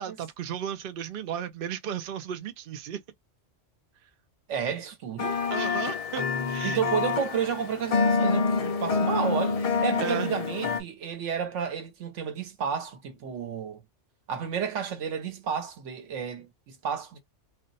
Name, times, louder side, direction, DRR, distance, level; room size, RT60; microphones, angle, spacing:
voice 1, 0.0-3.0 5.5-6.8 10.0-10.3, right 9 dB, 60° right, 0.7 m, -34 dB
voice 2, 4.5-5.4 6.6-13.8 14.3-17.2, right 7 dB, 85° right, 1.2 m, -31 dB
sound 1, 5.2-10.8, left 4 dB, 65° left, 0.3 m, -27 dB
2.5 x 2.2 x 3.9 m
omnidirectional pair, 1.2 m